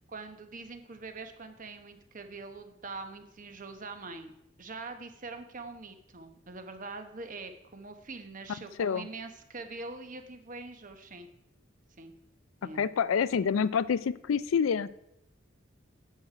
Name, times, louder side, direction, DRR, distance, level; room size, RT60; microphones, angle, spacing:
voice 1, 0.1-4.3 4.6-11.3 12.0-12.1 12.6-12.8, right 3 dB, 40° right, 7 dB, 1.0 m, -43 dB
voice 2, 12.7-14.9, left 6 dB, 85° left, 17 dB, 0.4 m, -27 dB
9.8 x 7.4 x 4.9 m, 0.80 s
head